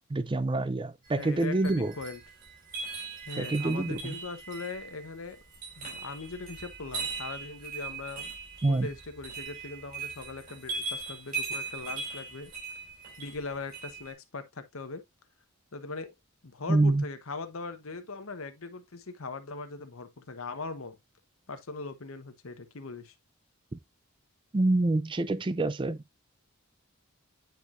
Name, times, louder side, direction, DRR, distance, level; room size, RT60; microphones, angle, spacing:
voice 1, 0.1-1.9 3.4-4.1 8.6-8.9 16.7-17.0 24.5-26.0, right 2 dB, 20° right, 0.4 m, -26 dB
sound 1, 1.0-14.1, right 4 dB, 40° right, 4.9 m, -40 dB
voice 2, 1.2-2.2 3.3-5.4 5.8-8.3 8.7-12.5 13.2-15.0 15.7-16.1 16.4-21.0 21.5-23.1, left 3 dB, 70° left, 1.0 m, -40 dB
9.3 x 4.6 x 2.5 m
head